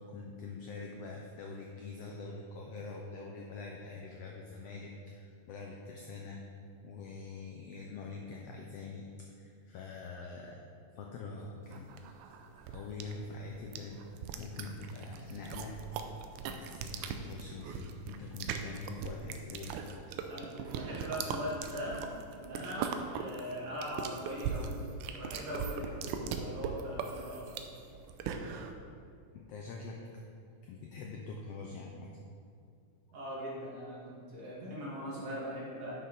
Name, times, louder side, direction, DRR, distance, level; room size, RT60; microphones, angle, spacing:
voice 1, 0.1-6.4 6.8-9.1 9.4-10.6 10.9-11.9 12.7-14.0 14.4-15.8 16.5-19.8 29.3-30.0 30.6-32.1, left 4 dB, 80° left, 0 dB, 1.4 m, -44 dB
sound 1, 11.7-28.7, right 6 dB, 80° right, 1.9 m, -40 dB
voice 2, 20.3-22.0 22.3-24.7 25.0-27.4 33.1-35.9, equal, 55° right, -5 dB, 2.7 m, -40 dB
10.0 x 6.5 x 3.9 m, 2.4 s
omnidirectional pair, 3.6 m